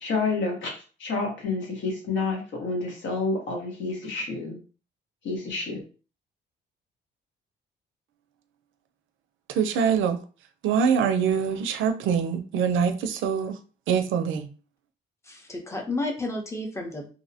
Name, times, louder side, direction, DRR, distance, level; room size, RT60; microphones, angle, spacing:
voice 1, 0.0-4.6 5.2-5.8, left 3 dB, 70° left, 1.0 m, -29 dB
voice 2, 9.5-10.2 10.6-13.6 13.9-14.5, right 7 dB, 80° right, 0.4 m, -24 dB
voice 3, 15.3-17.1, left 2 dB, 15° left, 0.6 m, -31 dB
2.6 x 2.0 x 2.7 m
cardioid pair, 90°, 20 cm